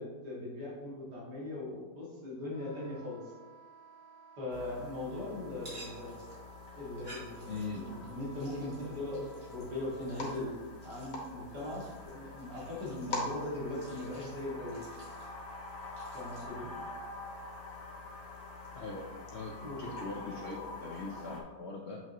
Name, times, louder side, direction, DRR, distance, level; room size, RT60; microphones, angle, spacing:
voice 1, 0.0-3.2 4.4-6.2 6.7-10.5 10.8-14.9 16.1-16.7 19.6-19.8, left 2 dB, 75° right, -6 dB, 2.7 m, -40 dB
Wind instrument woodwind instrument, 2.5-10.3, right 2 dB, 25° left, 2.0 m, -55 dB
sound 1, 4.5-21.4, left 2 dB, 90° left, 1.9 m, -45 dB
sound 2, 5.6-16.5, right 1 dB, 45° right, 2.7 m, -56 dB
voice 2, 7.5-7.8 18.7-19.5 19.8-22.0, left 3 dB, 60° left, -1 dB, 0.7 m, -41 dB
7.3 x 5.7 x 3.0 m, 1.3 s
omnidirectional pair, 1.8 m